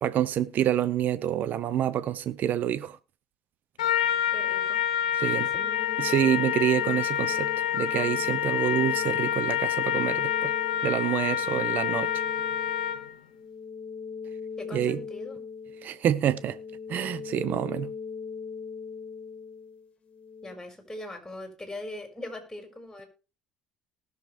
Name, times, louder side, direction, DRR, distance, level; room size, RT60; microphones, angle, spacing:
voice 1, 0.0-3.0 5.2-5.5 6.0-10.5 10.8-12.2 14.7-15.0 15.8-16.6 16.9-17.9, right 11 dB, 55° right, 0.7 m, -27 dB
Trumpet, 3.8-13.1, left 10 dB, 85° left, 0.8 m, -28 dB
voice 2, 4.3-4.8 5.2-5.5 14.6-15.5 20.4-23.0, left 1 dB, 10° left, 4.8 m, -41 dB
sound 1, 5.5-20.5, left 5 dB, 30° left, 1.7 m, -40 dB
19.5 x 6.6 x 3.3 m
hypercardioid pair, 65°, 4 cm